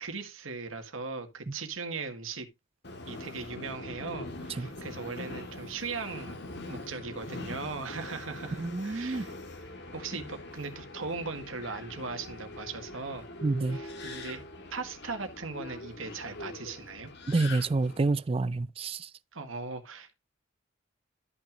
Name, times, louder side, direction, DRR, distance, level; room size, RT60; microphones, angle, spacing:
voice 1, 0.0-2.5 3.1-6.4 6.7-9.3 9.9-13.3 13.7-14.4 14.7-17.1 19.3-20.2, right 4 dB, 85° right, 1.8 m, -38 dB
Subway metro underground, 2.8-18.1, left 2 dB, 55° left, 1.7 m, -43 dB
voice 2, 8.6-9.3 13.4-13.8 17.3-19.1, right 3 dB, 30° right, 0.3 m, -28 dB
13.0 x 6.0 x 2.6 m
head